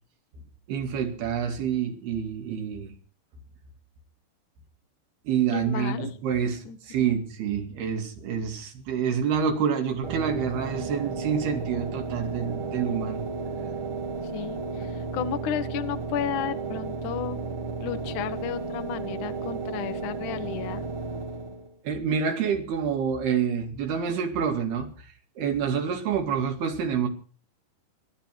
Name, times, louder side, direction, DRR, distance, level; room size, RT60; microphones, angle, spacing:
voice 1, 0.7-2.9 5.3-13.2 21.8-24.9 25.4-27.1, right 7 dB, 75° right, 4.3 m, -27 dB
voice 2, 5.5-6.1 6.6-7.1 14.3-17.4 17.8-20.8, left 10 dB, 65° left, 2.2 m, -33 dB
sound 1, 10.0-21.7, right 4 dB, 45° right, 1.8 m, -33 dB
25.5 x 12.0 x 4.5 m
omnidirectional pair, 4.6 m